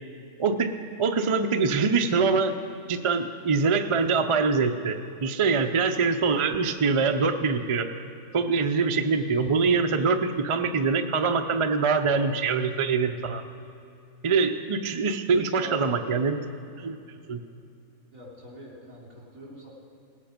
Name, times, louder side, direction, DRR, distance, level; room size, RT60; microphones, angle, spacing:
voice 1, 0.4-0.7 1.0-2.6 2.9-7.9 8.3-13.4 14.2-16.4 16.8-17.0 17.3-17.4, right 4 dB, 45° right, 6 dB, 0.4 m, -24 dB
voice 2, 15.3-16.1 18.1-19.7, right 1 dB, 75° right, -5 dB, 3.8 m, -42 dB
19.0 x 8.4 x 5.2 m, 2.6 s
omnidirectional pair, 1.4 m